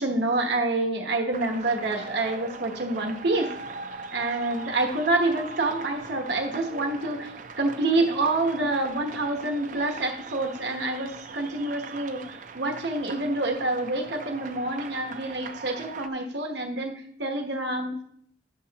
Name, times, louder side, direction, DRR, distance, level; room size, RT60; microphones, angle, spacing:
voice 1, 0.0-3.5 4.1-16.9 17.2-18.0, right 2 dB, 65° right, 3 dB, 1.1 m, -27 dB
sound 1, 1.3-16.1, right 4 dB, 40° right, 0.4 m, -41 dB
9.9 x 6.8 x 2.8 m, 0.68 s
head